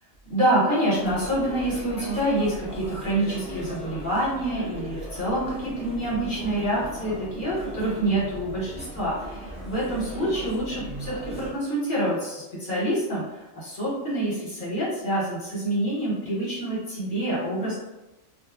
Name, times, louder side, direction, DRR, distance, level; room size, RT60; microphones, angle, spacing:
voice 1, 0.3-17.8, right 1 dB, 40° left, -8 dB, 1.4 m, -27 dB
sound 1, 0.9-11.5, right 1 dB, 10° right, 0.3 m, -38 dB
2.7 x 2.4 x 3.6 m, 1.0 s
omnidirectional pair, 1.4 m